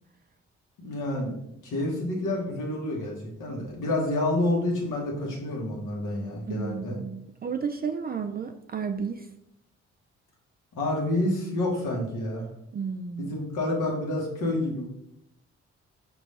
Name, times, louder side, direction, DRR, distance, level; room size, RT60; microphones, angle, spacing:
voice 1, 0.8-1.4 1.6-7.0 10.7-12.5 13.2-14.9, left 1 dB, 70° left, -2 dB, 1.5 m, -28 dB
voice 2, 6.5-9.3 12.7-13.3, right 6 dB, 30° right, 6 dB, 0.4 m, -32 dB
5.2 x 3.0 x 3.2 m, 0.77 s
hypercardioid pair, 40°, 32 cm